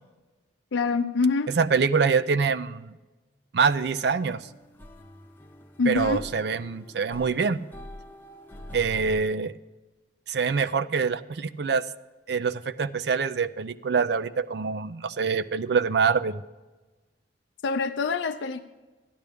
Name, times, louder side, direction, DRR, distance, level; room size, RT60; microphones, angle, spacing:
voice 1, 0.7-1.5 5.8-6.2 17.6-18.6, left 4 dB, 80° left, 5 dB, 0.5 m, -25 dB
voice 2, 1.5-2.9 3.5-4.4 5.9-7.6 8.7-9.5 10.3-11.8 12.3-16.4, right 5 dB, 60° right, 15 dB, 0.4 m, -25 dB
sound 1, 3.7-9.2, left 1 dB, 10° left, 0.7 m, -44 dB
13.5 x 10.5 x 3.5 m, 1.2 s
head